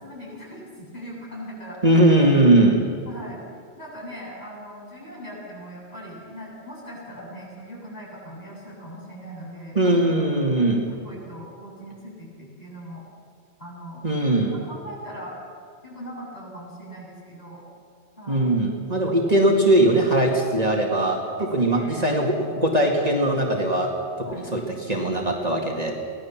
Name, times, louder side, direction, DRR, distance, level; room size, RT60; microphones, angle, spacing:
voice 1, 0.0-2.0 3.1-3.4 3.8-10.0 10.6-13.0 13.6-14.0 14.6-15.4 15.8-17.6 18.2-18.5 19.0-19.1 21.4-22.1 24.2-24.4, equal, 40° left, -5 dB, 7.5 m, -40 dB
voice 2, 1.8-2.8 9.8-10.8 14.0-14.5 18.3-23.9 24.3-25.9, right 1 dB, 35° right, 0 dB, 2.2 m, -20 dB
24.0 x 17.0 x 7.3 m, 2.3 s
omnidirectional pair, 1.1 m